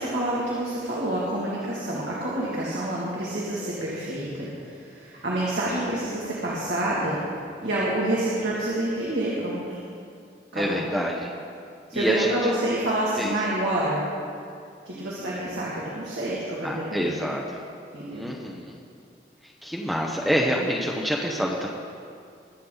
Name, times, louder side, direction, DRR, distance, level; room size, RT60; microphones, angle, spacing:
voice 1, 0.0-7.2 7.6-9.8 10.5-10.8 11.9-14.0 14.9-17.1 17.9-18.3, right 1 dB, 80° right, -7 dB, 2.3 m, -28 dB
voice 2, 10.5-11.3 11.9-12.5 13.2-13.4 14.9-15.4 16.6-17.6 18.1-18.8 19.4-21.7, equal, ahead, -2 dB, 0.8 m, -27 dB
21.5 x 8.4 x 3.9 m, 2.3 s
head